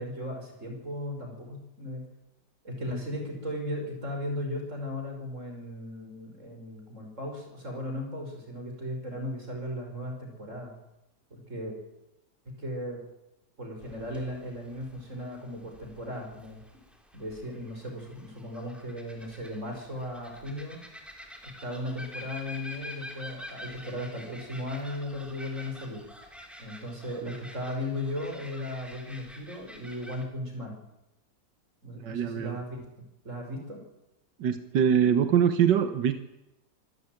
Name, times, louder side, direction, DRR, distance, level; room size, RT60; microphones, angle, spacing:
voice 1, 0.0-2.0 2.6-10.7 11.3-11.8 12.5-13.0 13.6-16.6 17.1-20.8 21.4-26.0 26.6-30.8 31.8-32.9 33.2-33.8, left 1 dB, 45° right, 2 dB, 6.0 m, -36 dB
sound 1, 13.8-30.3, left 1 dB, ahead, 3.3 m, -48 dB
voice 2, 32.0-32.6 34.4-36.2, right 8 dB, 85° right, 10 dB, 1.7 m, -24 dB
25.5 x 13.5 x 9.3 m, 0.90 s
omnidirectional pair, 1.8 m